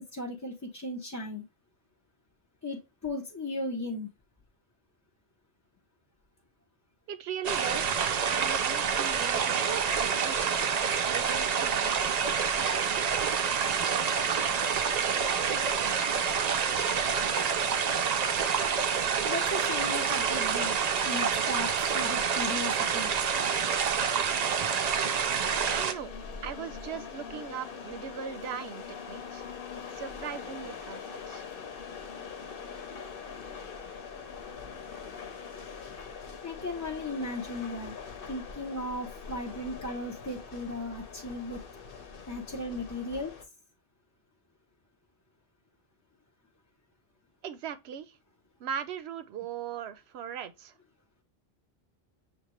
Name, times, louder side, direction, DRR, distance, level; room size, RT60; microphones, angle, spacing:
voice 1, 0.1-1.4 2.6-4.1 19.2-20.8 21.0-23.1 36.4-37.9 38.3-41.6 42.3-43.3, left 2 dB, 20° left, 0.5 m, -36 dB
voice 2, 7.1-13.0 25.7-26.1 26.4-29.4 29.9-31.4 47.4-48.2 48.6-50.7, right 8 dB, 80° right, 0.8 m, -39 dB
sound 1, 7.4-25.9, right 6 dB, 55° right, 0.5 m, -27 dB
sound 2, 25.4-43.4, left 6 dB, 60° left, 0.9 m, -43 dB
6.7 x 2.4 x 2.9 m
omnidirectional pair, 1.1 m